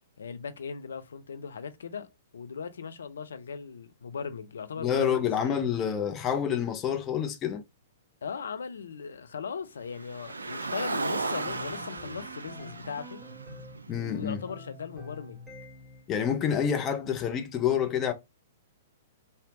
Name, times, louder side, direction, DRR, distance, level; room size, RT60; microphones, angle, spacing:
voice 1, 0.2-2.1 2.3-5.6 8.2-13.2 13.9-15.4 16.6-16.8, left 6 dB, 65° left, 0.4 m, -38 dB
voice 2, 4.8-7.6 13.9-14.4 16.1-18.1, left 8 dB, 25° left, 0.6 m, -28 dB
Car, 9.9-14.3, right 3 dB, 75° right, 0.4 m, -35 dB
sound 1, 11.2-13.8 14.2-16.1, left 2 dB, 5° right, 1.2 m, -47 dB
3.3 x 2.7 x 2.5 m
figure-of-eight pair, 110°, 0 cm